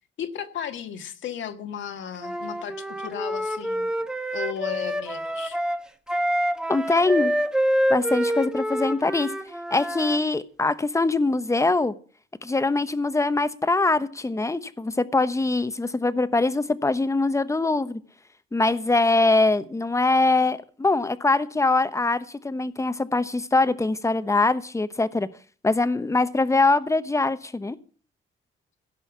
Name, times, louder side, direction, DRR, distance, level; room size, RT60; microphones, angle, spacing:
voice 1, 0.0-5.6, left 9 dB, 70° left, 1.7 m, -35 dB
Wind instrument woodwind instrument, 2.2-10.2, equal, 5° right, 1.2 m, -27 dB
voice 2, 6.7-7.3 7.9-9.3 9.7-11.9 12.4-18.0 18.5-25.3 25.6-27.8, left 3 dB, 15° left, 1.0 m, -23 dB
16.0 x 5.6 x 8.3 m
cardioid pair, 90°, 20 cm